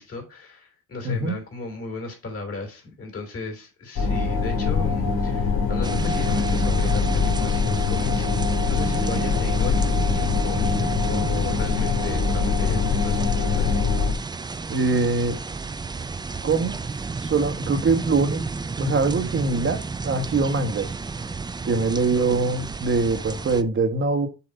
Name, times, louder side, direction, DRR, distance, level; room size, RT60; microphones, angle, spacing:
voice 1, 0.0-8.3 8.6-13.8 22.2-22.4, left 3 dB, 50° left, 3.5 m, -35 dB
voice 2, 1.0-1.4 14.7-15.4 16.4-16.8 17.2-18.5 18.8-20.9 21.6-24.3, right 3 dB, 40° right, 1.3 m, -23 dB
sound 1, 4.0-14.1, left 5 dB, 75° left, 1.8 m, -23 dB
sound 2, 5.8-23.6, right 4 dB, 15° right, 0.4 m, -32 dB
7.1 x 2.9 x 5.4 m
cardioid pair, 90°, 30 cm